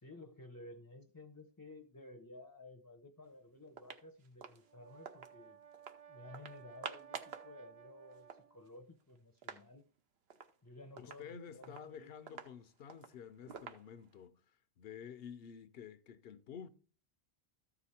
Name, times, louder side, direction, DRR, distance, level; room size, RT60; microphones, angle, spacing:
voice 1, 0.0-5.6 6.1-9.9 10.6-12.1, left 2 dB, 20° left, 0.6 m, -54 dB
sound 1, 3.2-3.3 3.7-5.3 5.7-6.0 6.3-7.5 7.8-7.9 8.1-9.7 10.0-10.1 10.3-10.6 11.0-14.3, right 6 dB, 80° right, 1.1 m, -50 dB
Brass instrument, 4.5-8.8, right 9 dB, 50° right, 0.4 m, -57 dB
voice 2, 11.0-16.7, left 7 dB, 75° left, 0.8 m, -51 dB
13.5 x 4.9 x 4.3 m
omnidirectional pair, 1.0 m